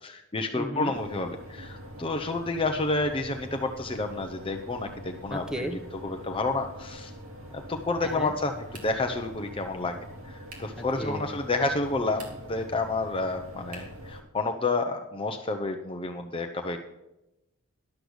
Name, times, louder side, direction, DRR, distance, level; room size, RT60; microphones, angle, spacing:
voice 1, 0.0-5.4 6.0-7.1 7.5-16.8, left 3 dB, 25° left, 5 dB, 0.7 m, -30 dB
voice 2, 0.6-0.9 5.3-5.8 8.0-8.3 10.8-11.4, equal, 5° right, 6 dB, 1.0 m, -34 dB
sound 1, 0.9-14.2, equal, 65° right, 2.2 m, -44 dB
sound 2, 8.7-9.2 10.5-10.8 12.0-12.6 13.7-14.1, right 3 dB, 85° right, 2.8 m, -48 dB
12.0 x 6.6 x 6.3 m, 0.92 s
head